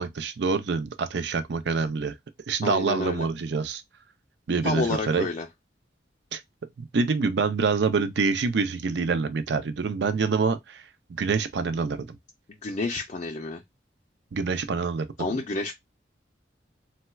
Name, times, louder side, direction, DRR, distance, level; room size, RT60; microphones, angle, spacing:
voice 1, 0.0-2.2 2.5-3.8 4.5-5.3 6.3-6.4 6.8-10.8 11.1-12.2 14.3-15.3, right 4 dB, 75° right, 0.5 m, -26 dB
voice 2, 2.6-3.3 4.6-5.5 12.5-13.6 15.2-15.7, left 3 dB, 40° left, 0.4 m, -29 dB
4.2 x 2.2 x 2.2 m
head